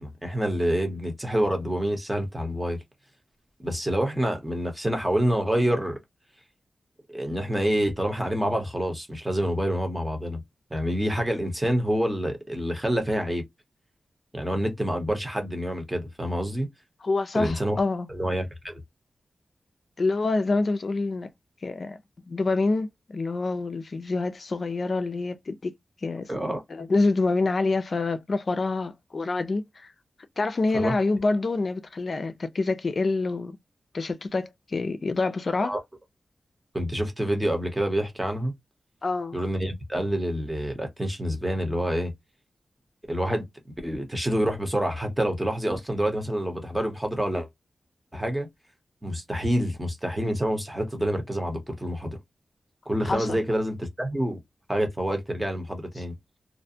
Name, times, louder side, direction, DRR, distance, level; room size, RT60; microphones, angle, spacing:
voice 1, 0.0-2.8 3.6-6.0 7.1-10.4 10.7-13.4 14.3-16.7 17.3-17.8 18.1-18.8 26.3-26.6 30.7-31.0 35.6-35.8 36.7-38.5 39.3-42.1 43.1-43.5 43.8-47.5 48.1-48.5 49.0-52.2 52.9-54.4 54.7-56.1, equal, 10° right, 0.8 m, -27 dB
voice 2, 17.0-18.1 20.0-21.3 21.6-22.0 22.3-25.7 26.0-26.3 26.7-29.9 30.4-33.6 33.9-35.8 39.0-39.4 53.1-53.4, left 3 dB, 45° left, 0.4 m, -26 dB
2.5 x 2.1 x 2.6 m
wide cardioid pair, 155°, 0 cm